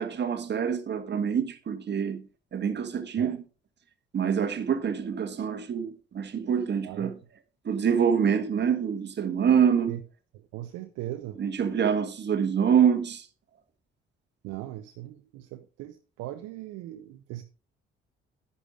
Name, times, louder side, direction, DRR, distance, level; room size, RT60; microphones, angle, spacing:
voice 1, 0.0-2.2 2.5-3.4 4.1-7.2 7.6-10.0 11.4-13.3, right 7 dB, 35° right, 1.4 m, -26 dB
voice 2, 10.5-11.4 14.4-17.4, right 15 dB, 55° right, 0.7 m, -39 dB
11.0 x 11.0 x 2.5 m
figure-of-eight pair, 45°, 30 cm